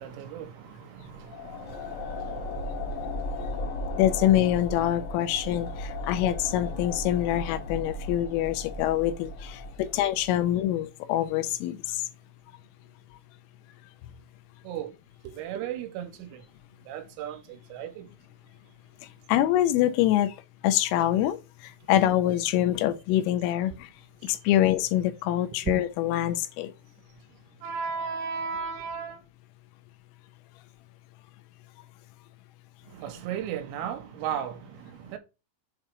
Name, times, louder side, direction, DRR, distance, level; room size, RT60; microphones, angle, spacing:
voice 1, 0.0-4.0 6.0-6.1 14.6-14.9 15.2-16.5 16.8-18.1 23.7-23.8 24.2-24.3 25.6-25.7 27.6-29.2 32.9-35.2, right 7 dB, 85° right, 3.3 m, -36 dB
sound 1, 1.1-10.4, left 2 dB, 70° left, 1.9 m, -36 dB
voice 2, 4.0-12.0 19.3-20.3 20.6-23.9 24.2-26.7, left 13 dB, 85° left, 3.3 m, -25 dB
7.8 x 3.0 x 4.5 m
omnidirectional pair, 5.8 m